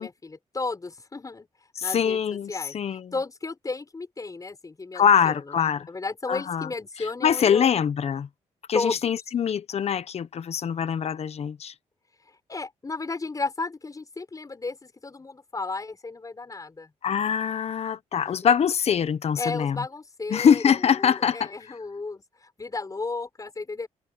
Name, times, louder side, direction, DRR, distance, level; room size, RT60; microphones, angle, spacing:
voice 1, 0.0-1.5 1.8-2.2 2.5-2.7 3.1-7.7 8.7-9.1 12.5-16.9 18.3-18.5 19.4-20.6 21.0-23.9, left 3 dB, 30° left, 6.7 m, -33 dB
voice 2, 1.8-3.1 4.9-5.9 6.3-6.7 7.0-8.3 8.7-11.7 17.0-19.8 20.3-21.5, left 7 dB, 55° left, 1.2 m, -24 dB
cardioid pair, 85°, 12 cm